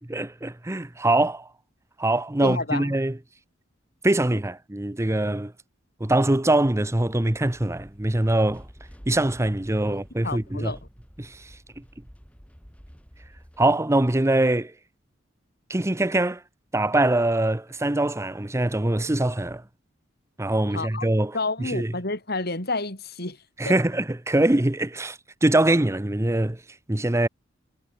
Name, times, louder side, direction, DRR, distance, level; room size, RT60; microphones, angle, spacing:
voice 1, 0.1-1.5 2.0-3.2 4.0-5.5 6.0-8.7 9.1-10.7 11.2-11.6 13.6-14.7 15.7-16.4 16.7-19.6 20.4-21.9 23.6-27.3, right 1 dB, 15° right, 0.8 m, -23 dB
voice 2, 2.4-3.0 9.8-10.0 10.2-10.8 20.7-21.1 21.3-23.4 23.7-23.8, left 3 dB, 55° left, 7.7 m, -30 dB
sound 1, 6.7-13.8, equal, 5° left, 6.3 m, -50 dB
head